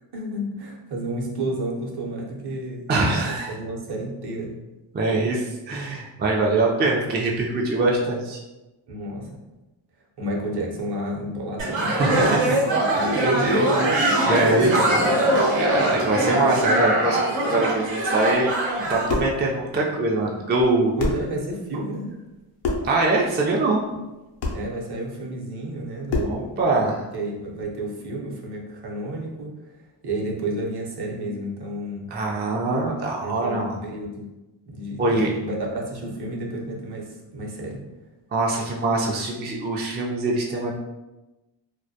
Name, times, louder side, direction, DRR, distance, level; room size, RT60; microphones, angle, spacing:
voice 1, 0.1-4.6 8.9-9.3 10.2-11.9 12.9-13.7 21.0-22.1 24.5-26.6 27.1-32.1 33.2-34.2 34.7-37.8, right 1 dB, 55° right, -1 dB, 0.7 m, -31 dB
voice 2, 2.9-3.5 4.9-8.4 11.9-12.4 13.2-13.6 13.9-15.2 15.5-17.2 17.5-18.6 18.9-20.9 22.8-23.8 26.2-27.0 32.1-33.8 35.0-35.3 38.3-40.7, right 2 dB, 25° right, -2 dB, 0.3 m, -23 dB
sound 1, 11.6-19.1, right 1 dB, 90° right, 0.8 m, -22 dB
sound 2, 18.8-19.4 20.6-20.7 21.0-21.3 22.6-23.0 24.4-24.7 26.1-26.4, left 3 dB, 85° left, 0.6 m, -26 dB
2.2 x 2.1 x 2.7 m, 1.0 s
cardioid pair, 70°, 47 cm